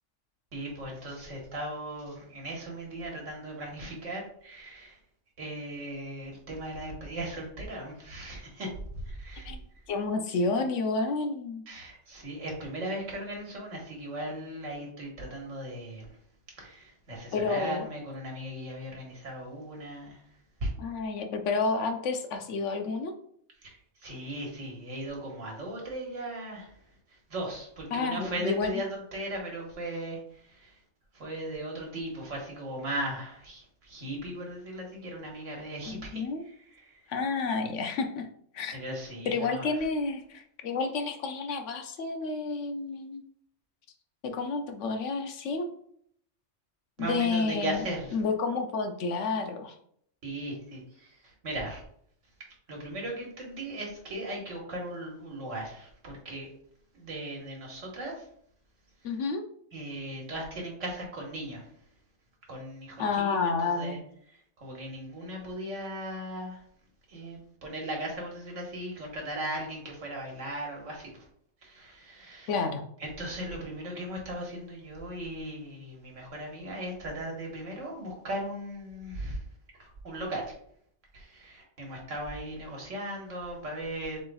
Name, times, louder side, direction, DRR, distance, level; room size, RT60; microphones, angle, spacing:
voice 1, 0.5-5.0 5.4-8.7 9.1-9.5 11.7-16.1 16.6-20.2 20.6-20.7 23.6-23.8 24.0-26.7 27.3-30.7 31.1-36.9 38.7-39.7 47.0-48.1 50.2-51.8 52.7-56.5 56.9-58.2 59.7-61.7 62.5-64.0 64.6-66.6 67.1-71.2 71.6-72.6 73.0-79.4 79.8-80.5 81.1-84.2, right 1 dB, 80° right, -1 dB, 1.7 m, -37 dB
voice 2, 9.9-11.6 17.3-17.9 20.8-23.1 27.9-28.8 35.9-36.4 37.1-38.3 38.5-38.8 39.3-43.2 44.2-45.7 47.0-47.8 48.1-49.7 59.0-59.4 63.0-64.0 72.5-72.8, left 4 dB, 75° left, 5 dB, 1.0 m, -30 dB
6.8 x 3.1 x 2.3 m, 0.65 s
omnidirectional pair, 1.3 m